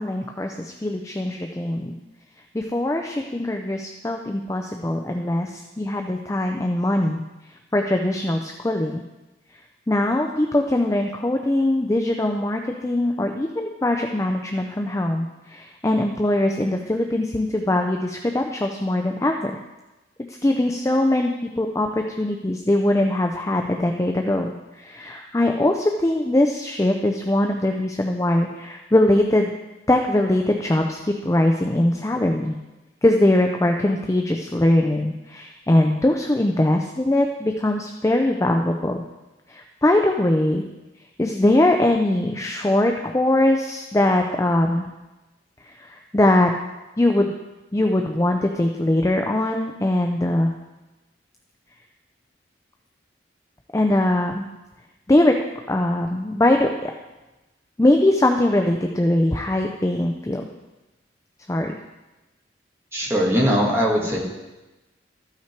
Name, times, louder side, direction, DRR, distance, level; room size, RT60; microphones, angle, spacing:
voice 1, 0.0-1.9 2.5-7.2 7.7-9.0 9.9-19.5 20.3-29.5 29.9-32.6 33.0-39.0 39.5-40.6 41.2-44.9 45.6-46.5 47.0-47.3 47.7-50.5 53.7-54.4 55.1-55.4 55.7-56.9 57.8-60.4 61.5-61.7, left 1 dB, 15° left, 3 dB, 0.4 m, -21 dB
voice 2, 62.9-64.2, equal, 15° right, -3 dB, 1.7 m, -20 dB
13.5 x 5.7 x 4.5 m, 1.1 s
head